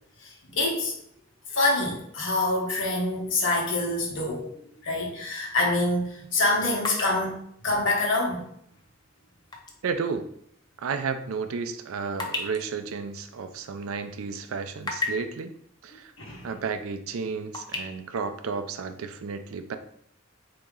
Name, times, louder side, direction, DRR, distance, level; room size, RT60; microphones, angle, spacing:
voice 1, 0.2-0.9 1.5-8.5 16.2-16.5, left 2 dB, 60° left, -1 dB, 1.1 m, -26 dB
sound 1, 6.8-9.8 10.2-10.3 10.9-14.0 14.4-15.4 16.4-16.5 16.9-17.8, left 3 dB, 20° left, 0.5 m, -36 dB
voice 2, 9.8-10.3 10.8-15.5 15.8-16.1 16.4-19.8, right 5 dB, 80° right, 9 dB, 0.4 m, -32 dB
4.0 x 2.8 x 3.6 m, 0.69 s
head